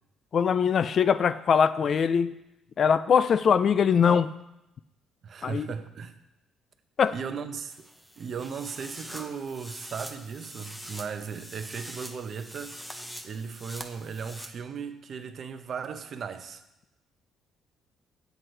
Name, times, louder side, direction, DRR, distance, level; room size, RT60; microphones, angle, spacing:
voice 1, 0.3-2.3 2.8-4.3 5.4-5.7 7.0-7.1, left 7 dB, 40° left, 15 dB, 0.3 m, -22 dB
voice 2, 5.2-6.2 7.1-7.9 8.2-12.8 13.2-16.6, right 6 dB, 45° right, 9 dB, 0.7 m, -37 dB
sound 1, 7.7-14.5, equal, 5° left, 0.8 m, -44 dB
9.7 x 7.9 x 4.5 m, 0.90 s
cardioid pair, 145°, 0 cm